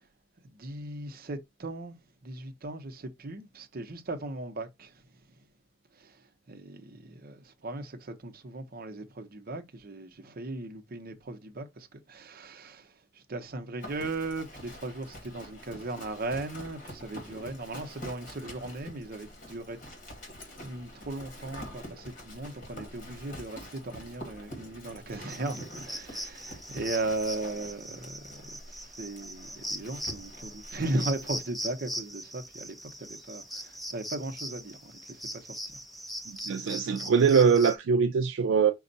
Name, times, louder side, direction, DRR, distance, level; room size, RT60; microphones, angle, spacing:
voice 1, 0.4-2.0 2.2-5.0 6.0-6.2 6.5-19.8 20.5-35.8 36.5-36.7, right 2 dB, 50° right, 0.8 m, -37 dB
Livestock farm animals working animals, 13.8-31.4, equal, 45° left, 1.6 m, -46 dB
sound 1, 25.3-37.8, equal, ahead, 0.7 m, -40 dB
voice 2, 36.4-38.7, right 6 dB, 70° right, 0.4 m, -22 dB
5.3 x 2.3 x 3.9 m
head